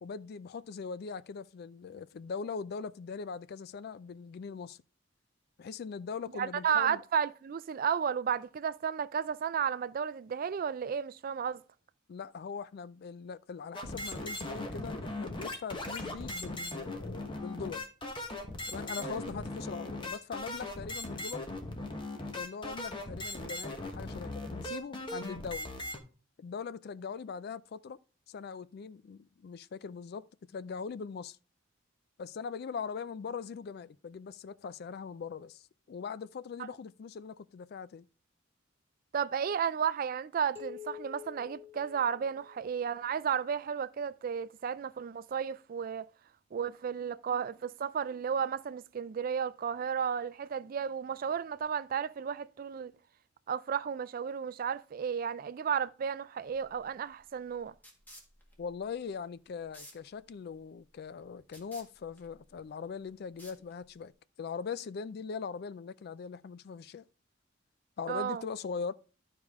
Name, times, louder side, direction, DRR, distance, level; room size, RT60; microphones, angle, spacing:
voice 1, 0.0-4.8 5.6-7.0 12.1-17.8 18.7-21.5 22.3-25.7 26.4-28.0 28.3-30.3 30.5-31.4 32.2-38.1 58.6-64.1 64.4-67.0 68.0-68.9, left 5 dB, 50° left, 0.3 m, -41 dB
voice 2, 6.3-11.6 19.0-19.2 39.1-46.1 46.5-52.9 53.5-57.7 68.1-68.4, right 7 dB, 45° right, 0.3 m, -33 dB
sound 1, 13.7-26.0, left 1 dB, 25° left, 1.1 m, -39 dB
sound 2, 40.5-43.0, left 11 dB, 10° right, 2.6 m, -48 dB
sound 3, 56.5-64.1, equal, 10° left, 1.6 m, -58 dB
11.5 x 4.8 x 3.5 m
head